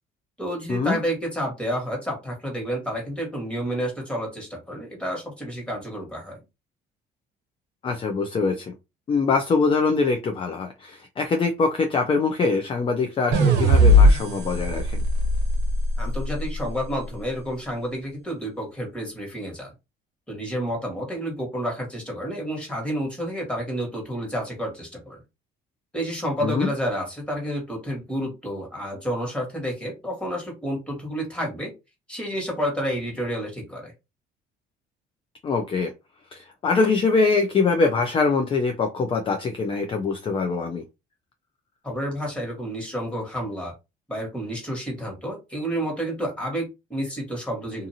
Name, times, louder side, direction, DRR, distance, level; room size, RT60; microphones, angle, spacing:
voice 1, 0.4-6.4 16.0-19.7 20.3-25.2 25.9-31.7 32.1-33.9 41.8-43.7 44.1-47.9, equal, 5° left, 1.5 m, -30 dB
voice 2, 7.8-8.7 9.1-15.0 26.4-26.7 35.4-35.9 36.3-40.8, left 4 dB, 30° left, 0.5 m, -23 dB
sound 1, 13.3-16.6, left 1 dB, 80° right, 0.7 m, -19 dB
2.6 x 2.5 x 2.7 m
cardioid pair, 110°, 17 cm